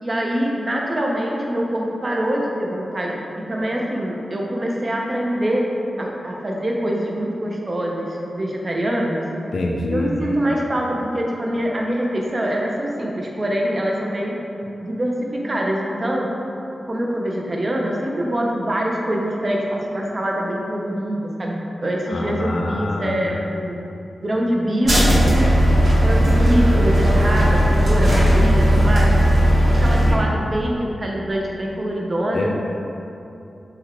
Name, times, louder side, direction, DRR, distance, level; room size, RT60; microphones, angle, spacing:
voice 1, 0.0-3.2 3.5-5.6 6.0-9.2 9.9-14.4 14.8-15.1 15.4-16.3 16.9-23.8 24.2-25.2 26.0-29.1 29.6-32.5, equal, 35° right, -1 dB, 0.4 m, -24 dB
voice 2, 9.5-10.1 22.1-23.2 32.3-32.5, left 2 dB, 75° left, -1 dB, 0.4 m, -25 dB
sound 1, 24.8-30.1, equal, 75° right, 1.0 m, -16 dB
3.3 x 2.1 x 3.6 m, 2.8 s
wide cardioid pair, 90°, 0 cm